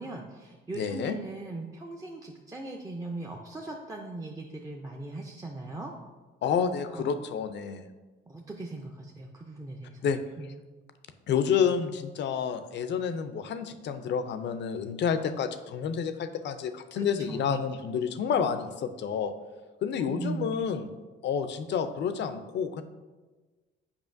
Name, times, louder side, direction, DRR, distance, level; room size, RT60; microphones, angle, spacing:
voice 1, 0.0-5.9 6.9-7.1 8.3-10.5 16.9-17.6 20.0-20.5, right 2 dB, 15° right, 0 dB, 0.5 m, -39 dB
voice 2, 0.7-1.2 6.4-7.8 10.0-10.2 11.3-19.3 19.8-20.9 21.2-22.8, left 7 dB, 60° left, 10 dB, 0.5 m, -29 dB
7.2 x 5.0 x 2.6 m, 1.3 s
cardioid pair, 90°, 20 cm